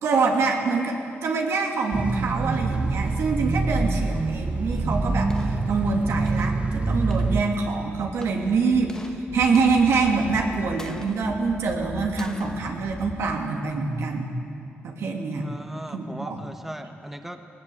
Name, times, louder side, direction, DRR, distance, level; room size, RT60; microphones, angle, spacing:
voice 1, 0.0-14.4 14.8-15.5 15.9-16.4, right 4 dB, 75° right, 1 dB, 2.7 m, -25 dB
sound 1, 1.9-7.4, right 3 dB, 25° right, 0.9 m, -25 dB
sound 2, 5.0-14.2, left 2 dB, 15° left, 1.3 m, -40 dB
voice 2, 15.3-17.5, equal, 5° right, 6 dB, 1.2 m, -38 dB
19.5 x 19.0 x 8.0 m, 2.5 s
cardioid pair, 90°, 5 cm